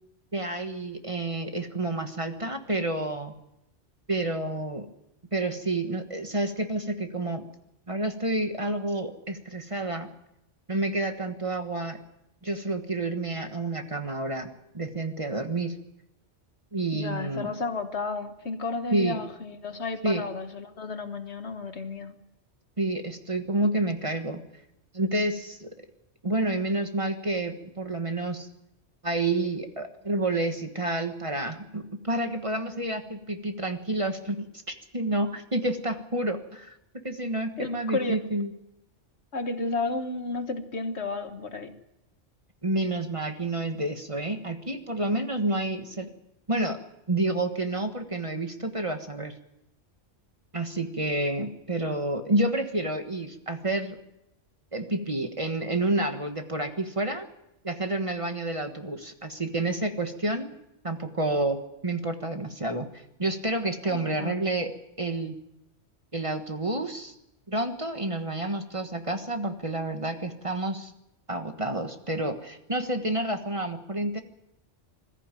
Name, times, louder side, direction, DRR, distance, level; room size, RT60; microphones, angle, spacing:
voice 1, 0.3-3.3 4.1-4.9 5.3-7.4 7.9-10.1 10.7-12.0 12.4-14.5 14.7-15.7 16.7-17.5 18.9-19.2 20.0-20.3 22.8-24.4 24.9-25.7 26.2-28.5 29.0-36.8 37.0-38.5 42.6-46.1 46.5-46.8 47.1-49.3 50.5-54.0 54.7-57.3 57.6-60.5 60.8-64.7 65.0-65.3 66.1-67.1 67.5-70.9 71.3-74.2, right 2 dB, 30° right, 6 dB, 1.4 m, -29 dB
voice 2, 16.9-22.2 37.6-38.2 39.3-41.7 63.8-64.4, left 3 dB, 70° left, 8 dB, 1.7 m, -32 dB
21.0 x 14.5 x 9.2 m, 0.86 s
omnidirectional pair, 1.2 m